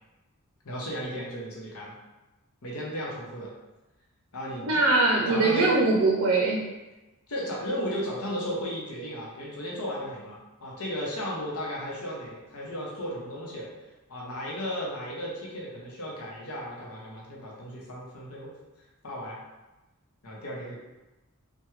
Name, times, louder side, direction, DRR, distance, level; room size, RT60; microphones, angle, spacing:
voice 1, 0.6-1.9 2.6-3.5 4.3-4.9 5.3-5.8 7.3-13.7 14.1-18.5 19.0-19.4 20.2-20.7, equal, 80° left, -4 dB, 0.8 m, -35 dB
voice 2, 4.6-6.6, right 3 dB, 75° right, -2 dB, 0.5 m, -22 dB
3.4 x 2.2 x 3.1 m, 1.1 s
head